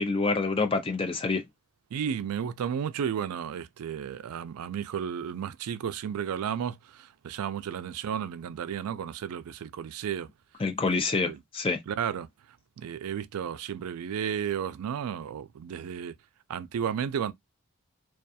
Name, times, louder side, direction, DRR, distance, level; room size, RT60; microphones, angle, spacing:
voice 1, 0.0-1.4 10.6-11.8, left 3 dB, 25° left, 0.4 m, -27 dB
voice 2, 1.9-10.3 11.2-11.4 11.9-12.3 12.8-16.1 16.5-17.3, right 8 dB, 80° right, 0.3 m, -33 dB
2.3 x 2.3 x 2.6 m
head